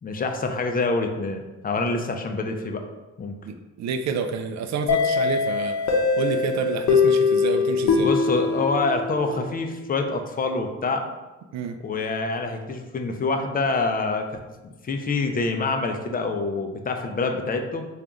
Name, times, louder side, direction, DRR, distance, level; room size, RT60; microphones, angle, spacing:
voice 1, 0.0-2.8 3.2-3.3 8.0-11.1 11.8-14.3 14.8-17.9, left 3 dB, 30° left, 5 dB, 0.4 m, -26 dB
voice 2, 3.5-5.8 6.2-8.1 11.5-11.8, right 5 dB, 65° right, 7 dB, 0.4 m, -29 dB
sound 1, 4.9-9.6, left 5 dB, 60° left, 0.7 m, -22 dB
3.4 x 2.4 x 3.8 m, 1.1 s
cardioid pair, 90°, 30 cm